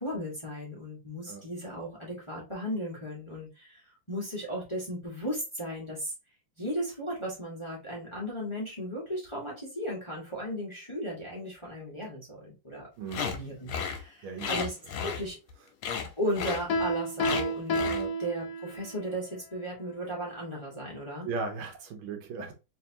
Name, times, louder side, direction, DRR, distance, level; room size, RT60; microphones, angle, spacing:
voice 1, 0.0-3.8 4.1-6.1 6.6-12.9 13.2-15.4 16.2-17.9 18.2-21.3, equal, 15° left, 1.1 m, -36 dB
voice 2, 13.0-13.4 14.2-14.5 17.9-18.1 21.2-22.5, right 4 dB, 75° right, 1.6 m, -36 dB
sound 1, 13.1-13.4 13.7-14.0 14.4-15.5 15.8-16.1 16.3-16.6 17.2-17.4 17.7-18.0, left 6 dB, 80° left, 1.6 m, -33 dB
Piano, 16.7-19.0, equal, 60° left, 1.1 m, -30 dB
3.5 x 3.3 x 2.8 m
omnidirectional pair, 2.3 m